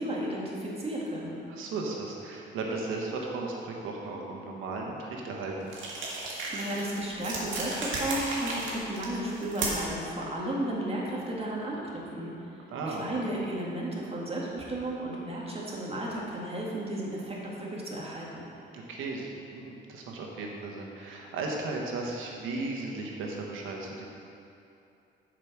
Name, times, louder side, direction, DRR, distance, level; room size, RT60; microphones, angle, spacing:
voice 1, 0.0-1.3 6.5-12.3 12.9-18.3, right 1 dB, 30° right, -4 dB, 2.0 m, -33 dB
voice 2, 1.5-5.7 12.7-13.0 18.7-24.0, right 3 dB, 90° right, -1 dB, 1.3 m, -35 dB
sound 1, 5.7-10.0, right 2 dB, 75° right, 1.9 m, -34 dB
7.4 x 5.0 x 5.9 m, 2.7 s
cardioid pair, 90°, 20 cm